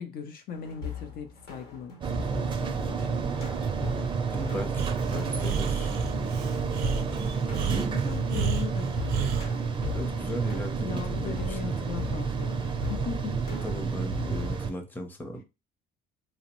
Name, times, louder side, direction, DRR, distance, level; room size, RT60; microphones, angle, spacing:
voice 1, 0.0-3.7 6.2-6.4 7.9-9.0 10.8-13.4, left 7 dB, 60° left, 0.5 m, -39 dB
sound 1, 0.5-14.6, left 7 dB, 80° left, 1.1 m, -41 dB
sound 2, 2.0-14.7, right 5 dB, 30° right, 0.4 m, -30 dB
voice 2, 4.3-6.0 9.9-11.0 11.2-11.7 13.6-15.4, equal, 10° left, 0.6 m, -36 dB
Breathing, 4.8-9.5, right 7 dB, 80° right, 0.5 m, -32 dB
2.8 x 2.0 x 2.9 m
cardioid pair, 110°, 17 cm